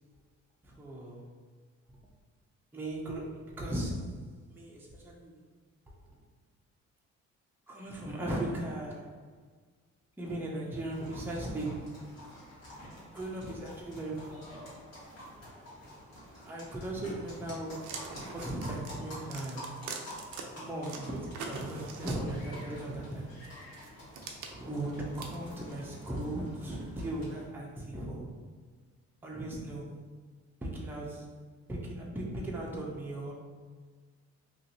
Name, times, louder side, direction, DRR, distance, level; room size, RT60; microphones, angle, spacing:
voice 1, 0.6-1.3 2.7-5.4 7.7-9.2 10.2-12.1 13.1-14.6 16.5-19.8 20.6-23.4 24.5-28.4 29.2-30.0 30.6-31.4 31.7-33.3, right 1 dB, 5° right, -3 dB, 0.6 m, -37 dB
sound 1, 10.9-27.5, equal, 55° left, 1.5 m, -48 dB
sound 2, 17.8-20.4 20.8-22.6 23.4-26.1, right 5 dB, 85° right, 0.5 m, -44 dB
3.0 x 2.7 x 2.7 m, 1.5 s
cardioid pair, 90°, 30 cm